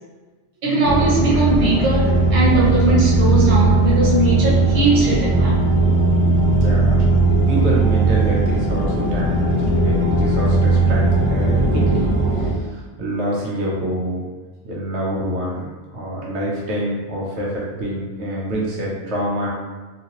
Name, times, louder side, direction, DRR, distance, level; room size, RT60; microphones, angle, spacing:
voice 1, 0.6-5.5, right 2 dB, 30° right, -7 dB, 0.9 m, -19 dB
sound 1, 0.8-12.5, right 2 dB, 20° left, 0.8 m, -17 dB
voice 2, 6.6-6.9 7.5-12.1 12.4-14.2 14.6-19.5, right 1 dB, 70° right, -4 dB, 1.0 m, -26 dB
3.2 x 2.8 x 2.9 m, 1.3 s
omnidirectional pair, 1.2 m